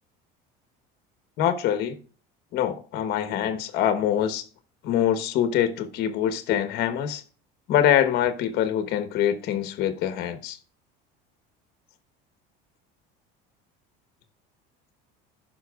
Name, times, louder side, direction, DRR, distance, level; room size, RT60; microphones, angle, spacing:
voice 1, 1.4-2.0 2.5-4.4 4.8-7.2 7.7-10.6, left 10 dB, 50° left, 1.1 m, -24 dB
16.5 x 5.7 x 2.4 m
cardioid pair, 160°, 21 cm